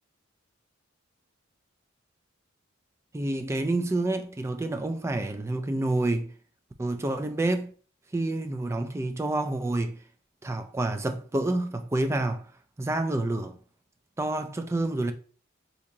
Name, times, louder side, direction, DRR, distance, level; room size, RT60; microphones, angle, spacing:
voice 1, 3.1-6.3 6.8-7.7 8.1-10.0 10.4-12.4 12.8-13.6 14.2-15.1, right 2 dB, 15° right, 0.3 m, -28 dB
3.6 x 2.8 x 2.6 m
head